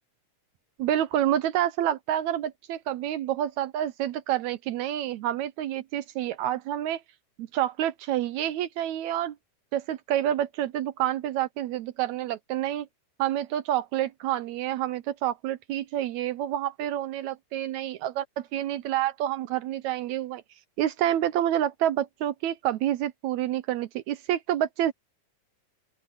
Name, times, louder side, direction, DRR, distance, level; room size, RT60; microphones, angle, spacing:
voice 1, 0.8-7.0 7.4-9.4 9.7-12.9 13.2-20.4 20.8-24.9, right 12 dB, 75° right, 1.9 m, -28 dB
open air
omnidirectional pair, 3.6 m